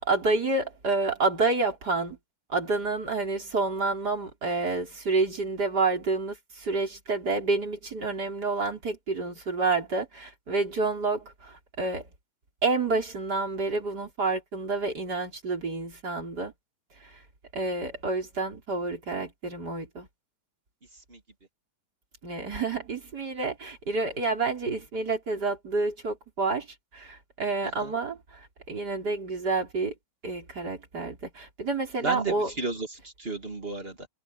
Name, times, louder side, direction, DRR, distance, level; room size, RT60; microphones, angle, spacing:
voice 1, 0.0-2.2 2.5-12.1 12.6-16.5 17.0-17.2 17.5-20.1 22.2-26.7 26.9-29.9 30.2-32.5, right 3 dB, 50° right, 5.1 m, -29 dB
voice 2, 32.0-34.1, right 3 dB, 25° right, 2.6 m, -33 dB
omnidirectional pair, 2.3 m